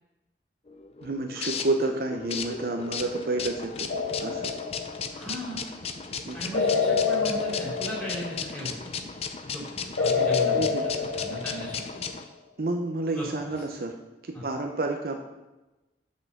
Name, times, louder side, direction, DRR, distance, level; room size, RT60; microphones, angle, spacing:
sound 1, 0.7-12.2, left 6 dB, 35° left, 0.5 m, -36 dB
voice 1, 1.0-3.9 4.2-4.5 6.3-6.4 10.5-10.8 12.6-14.0 14.2-15.2, right 2 dB, 55° right, 3 dB, 0.6 m, -29 dB
sound 2, 3.9-5.3 6.5-8.7 10.0-12.1, left 5 dB, 85° left, 1.0 m, -27 dB
voice 2, 5.1-5.7 6.3-9.0 9.4-12.0 13.1-13.5 14.3-14.5, equal, 10° left, -6 dB, 2.9 m, -37 dB
6.1 x 5.4 x 6.5 m, 1.1 s
head